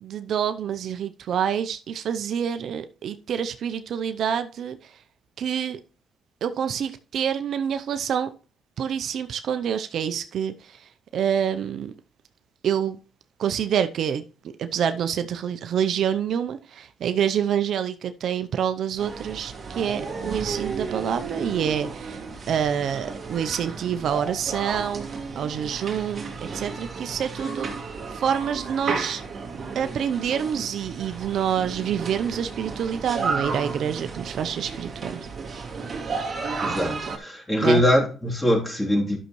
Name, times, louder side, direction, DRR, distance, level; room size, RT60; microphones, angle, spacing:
voice 1, 0.0-4.8 5.4-5.8 6.4-8.3 8.8-10.8 11.1-11.9 12.6-13.0 13.4-14.2 14.6-22.2 22.5-25.1 25.4-27.7 28.1-29.2 29.7-35.6 37.6-37.8, right 8 dB, 65° right, 0.6 m, -27 dB
sound 1, 19.0-37.2, right 4 dB, 40° right, 2.3 m, -33 dB
voice 2, 36.6-39.2, equal, 15° left, 3.2 m, -22 dB
11.0 x 6.5 x 3.1 m
cardioid pair, 90°, 0 cm